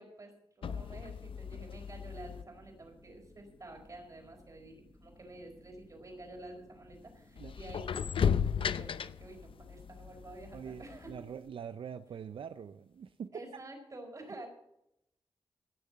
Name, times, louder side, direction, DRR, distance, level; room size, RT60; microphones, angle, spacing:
voice 1, 0.0-11.1 13.3-14.5, right 2 dB, 40° right, 2 dB, 4.6 m, -49 dB
sound 1, 0.6-2.4 6.9-7.0 7.4-11.2 11.5-11.6, left 7 dB, 80° left, 0.6 m, -35 dB
sound 2, 1.6-11.4, left 2 dB, 35° left, 1.8 m, -60 dB
voice 2, 7.4-7.8 10.5-13.3, right 7 dB, 80° right, 12 dB, 0.5 m, -44 dB
17.5 x 6.7 x 7.5 m, 0.81 s
wide cardioid pair, 105°, 9 cm